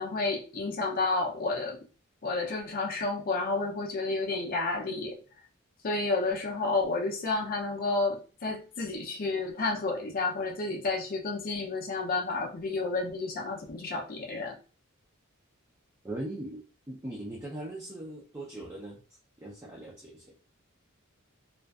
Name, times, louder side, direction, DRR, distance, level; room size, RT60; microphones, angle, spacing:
voice 1, 0.0-1.8 2.2-5.2 5.8-14.6, left 3 dB, 40° left, 0 dB, 0.5 m, -31 dB
voice 2, 16.0-19.0 19.4-20.3, right 1 dB, 15° right, -5 dB, 0.4 m, -40 dB
2.5 x 2.3 x 2.3 m, 0.37 s
head